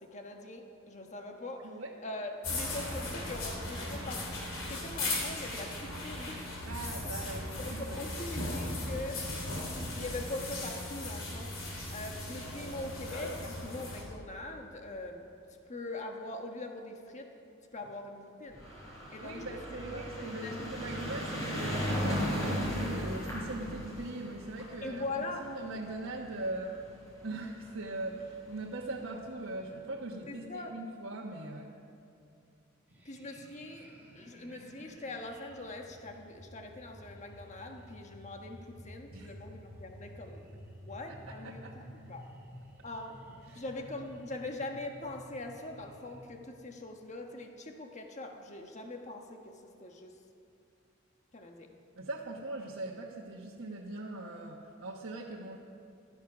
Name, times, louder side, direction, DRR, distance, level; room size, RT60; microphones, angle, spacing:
voice 1, 0.0-6.5 7.0-7.1 7.6-9.2 9.9-15.2 15.7-17.3 17.7-18.6 19.1-19.6 19.9-20.7 24.8-25.5 30.3-30.7 33.0-33.9 34.1-41.6 42.0-42.3 42.8-50.1 51.3-51.7, left 2 dB, 35° left, 3 dB, 1.3 m, -42 dB
sound 1, 2.4-14.0, left 2 dB, 80° left, 3.2 m, -37 dB
voice 2, 6.6-8.1 19.2-25.0 25.4-26.9 27.2-31.7 39.1-39.3 41.6-41.7 43.5-43.6 52.0-55.6, right 2 dB, 85° right, -4 dB, 1.3 m, -40 dB
sound 2, 18.5-27.0 27.8-27.9 28.1-28.2 28.5-28.6, equal, 15° left, 4.5 m, -36 dB
sound 3, 32.9-46.4, equal, 10° right, 2.2 m, -52 dB
15.5 x 12.5 x 6.2 m, 2.5 s
head